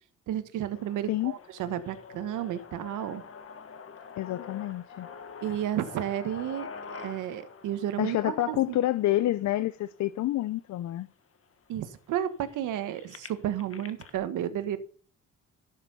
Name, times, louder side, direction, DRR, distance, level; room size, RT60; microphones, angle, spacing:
voice 1, 0.3-3.2 5.4-8.8 11.7-14.8, right 11 dB, 85° right, 1.4 m, -32 dB
sound 1, 0.7-10.7 11.4-11.5 11.7-14.2, left 6 dB, 50° left, 1.5 m, -46 dB
voice 2, 4.2-5.1 8.0-11.1, left 14 dB, 65° left, 0.6 m, -28 dB
11.5 x 6.7 x 5.4 m
cardioid pair, 90°, 30 cm